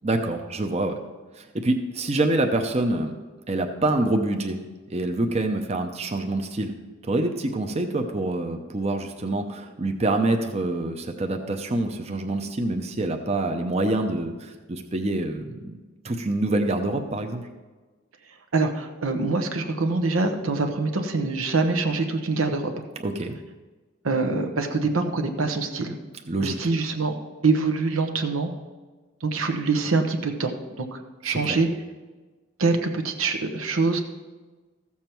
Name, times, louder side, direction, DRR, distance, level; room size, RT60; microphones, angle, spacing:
voice 1, 0.0-1.0 1.3-3.1 3.5-4.6 4.9-6.7 7.0-15.8 16.0-17.5 23.0-23.4 26.3-26.6 31.5-31.6, right 2 dB, 30° right, 5 dB, 0.7 m, -26 dB
voice 2, 18.5-22.7 24.0-25.9 26.4-27.2 27.4-28.5 29.2-30.5 30.8-31.7 32.6-34.0, right 3 dB, 85° right, 5 dB, 1.1 m, -24 dB
14.5 x 7.2 x 4.6 m, 1.3 s
head